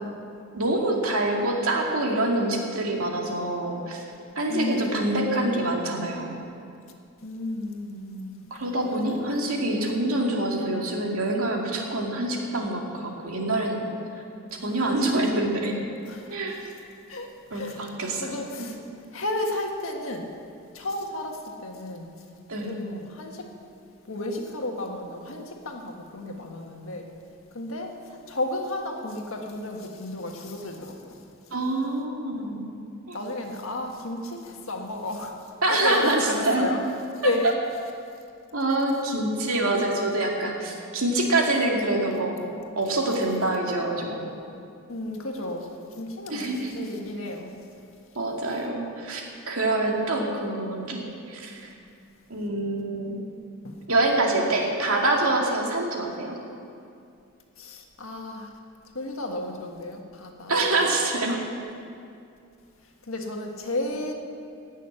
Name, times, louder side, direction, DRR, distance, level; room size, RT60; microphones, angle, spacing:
voice 1, 0.5-4.0 4.4-6.4 8.5-13.9 14.6-15.7 16.3-16.6 17.5-18.7 22.5-22.7 31.5-32.6 33.1-33.2 35.6-36.2 36.4-36.7 38.5-42.4 42.8-44.3 46.3-46.7 48.2-51.7 52.3-53.2 53.9-56.4 60.5-61.3, right 2 dB, 85° right, 0 dB, 2.3 m, -26 dB
voice 2, 4.5-5.3 7.2-8.4 8.9-9.4 16.1-16.3 17.1-17.9 18.2-18.8 19.1-20.3 20.7-22.1 22.6-23.5 24.1-27.1 27.5-31.2 33.1-35.4 35.7-36.8 37.2-37.5 44.9-47.5 53.6-53.8 57.6-58.5 58.9-61.0 61.3-61.4 63.0-64.1, left 1 dB, 75° left, 2 dB, 1.6 m, -33 dB
16.0 x 6.5 x 9.8 m, 2.5 s
head